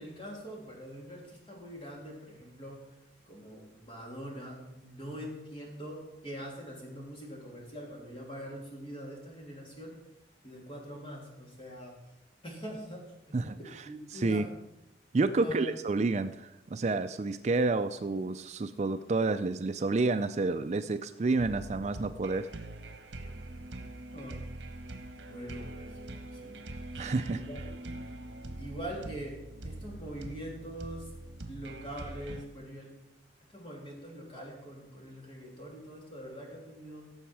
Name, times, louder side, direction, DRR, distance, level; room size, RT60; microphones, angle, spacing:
voice 1, 0.0-2.9 3.3-9.9 10.4-11.9 12.4-14.5 15.4-15.8 24.1-24.4 25.2-26.0 26.2-26.6 26.9-27.7 28.6-29.4 29.6-31.1 31.5-32.9 33.5-37.1, equal, 30° left, -2 dB, 3.1 m, -43 dB
voice 2, 13.3-13.8 14.1-14.5 15.1-22.5 27.0-27.4, right 3 dB, 35° right, 10 dB, 0.4 m, -29 dB
sound 1, 21.4-32.4, right 1 dB, 75° right, 1.2 m, -43 dB
16.0 x 7.1 x 4.7 m, 0.91 s
head